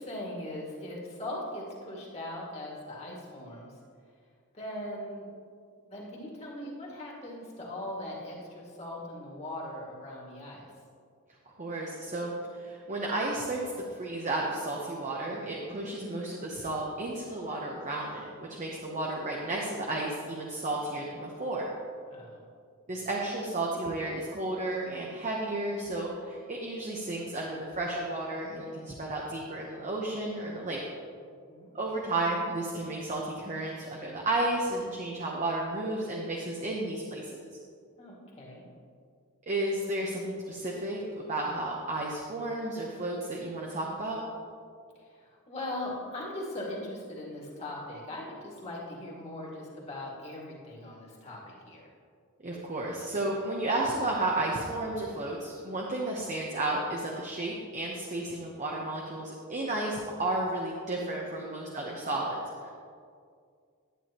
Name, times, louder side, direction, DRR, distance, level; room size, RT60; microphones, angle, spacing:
voice 1, 0.0-3.7 4.5-5.3 5.8-10.7 15.6-15.8 22.1-22.4 22.9-23.0 31.5-31.7 38.0-38.7 45.0-51.9, left 1 dB, 30° left, -5 dB, 2.2 m, -40 dB
voice 2, 11.6-13.6 13.9-21.7 22.9-30.8 31.7-37.5 39.5-44.2 52.4-62.7, right 2 dB, 35° right, -2 dB, 0.9 m, -33 dB
11.5 x 9.3 x 3.0 m, 2.2 s
head